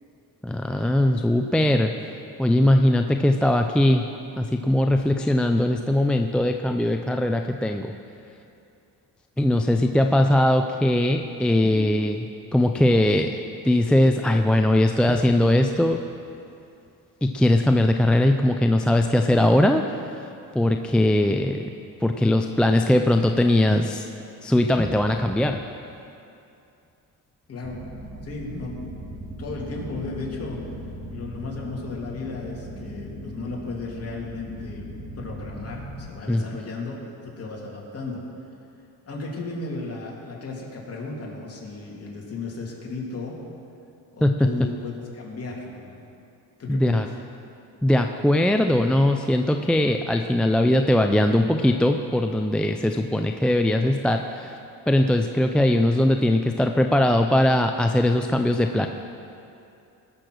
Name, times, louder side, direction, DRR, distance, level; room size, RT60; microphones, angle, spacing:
voice 1, 0.4-1.9 2.4-4.0 4.4-7.9 9.4-13.3 13.6-16.0 17.2-20.1 20.5-21.7 22.0-24.1 24.4-25.6 36.3-36.4 44.2-44.5 46.7-47.1 47.8-54.6 54.9-58.9, left 1 dB, 5° left, 4 dB, 0.4 m, -20 dB
sound 1, 27.6-36.0, right 1 dB, 40° right, 3.3 m, -38 dB
voice 2, 28.2-29.1 29.4-30.6 31.1-34.9 35.2-38.2 39.0-43.4 44.1-46.1 46.6-47.0, left 3 dB, 35° left, -2 dB, 2.9 m, -35 dB
20.0 x 6.7 x 6.2 m, 2.7 s
cardioid pair, 115°, 39 cm